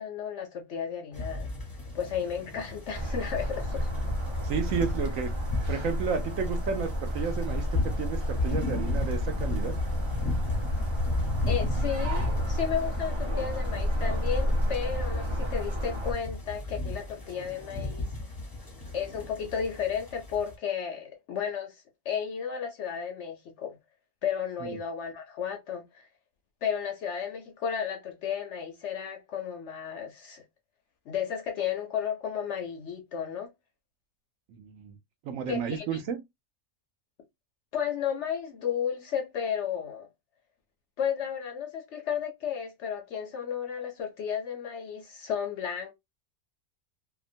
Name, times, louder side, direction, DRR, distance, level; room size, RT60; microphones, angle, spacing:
voice 1, 0.0-1.5 1.9-3.9 11.5-18.1 18.9-23.8 24.2-26.1 26.6-30.4 31.1-33.5 35.5-35.9 37.7-40.1 41.0-45.9, left 8 dB, 65° left, 0.7 m, -33 dB
sound 1, 1.1-20.5, left 2 dB, 20° left, 0.6 m, -35 dB
sound 2, 2.9-16.1, equal, 30° right, 0.5 m, -31 dB
voice 2, 4.4-5.3 5.7-9.8 24.6-24.7 34.5-35.0 35.2-36.2, right 6 dB, 70° right, 0.9 m, -32 dB
2.8 x 2.2 x 2.5 m
omnidirectional pair, 1.6 m